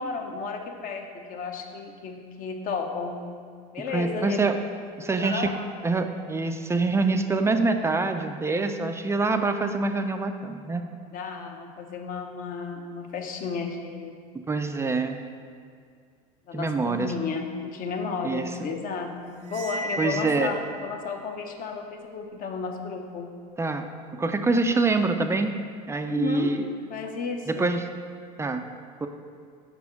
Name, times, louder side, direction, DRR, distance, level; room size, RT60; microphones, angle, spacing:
voice 1, 0.0-3.2 3.7-4.4 5.0-5.7 11.1-14.2 16.5-23.3 26.1-26.5 26.9-27.7, left 5 dB, 45° left, 4 dB, 0.8 m, -33 dB
voice 2, 3.9-4.6 5.0-5.5 5.8-10.8 14.5-15.2 16.5-17.1 18.2-18.5 20.0-20.5 23.6-23.8 24.2-25.5 25.9-26.7 27.5-27.9 28.4-28.6 29.0-29.1, right 3 dB, 15° right, 7 dB, 0.3 m, -25 dB
Cymbal, 19.4-20.9, equal, 80° right, 0.7 m, -34 dB
5.7 x 4.1 x 5.7 m, 2.1 s
supercardioid pair, 105°, 20 cm